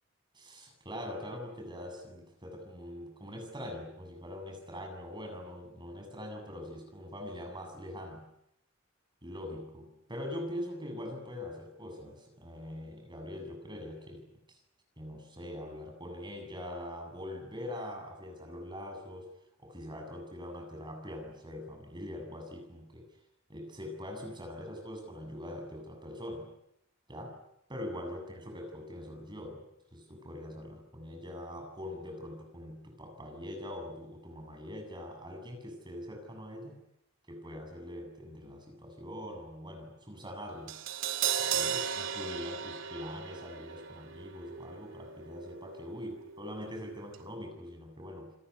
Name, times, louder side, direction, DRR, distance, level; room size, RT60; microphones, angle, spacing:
voice 1, 0.3-8.3 9.2-14.6 15.0-19.3 19.6-23.1 23.5-26.5 27.1-27.4 27.7-29.6 29.9-36.8 37.3-40.8 41.4-48.3, left 1 dB, 25° right, 3 dB, 7.4 m, -43 dB
Crash cymbal, 40.7-46.8 47.1-47.2, right 8 dB, 70° right, 2.7 m, -36 dB
29.0 x 21.5 x 9.7 m, 0.78 s
head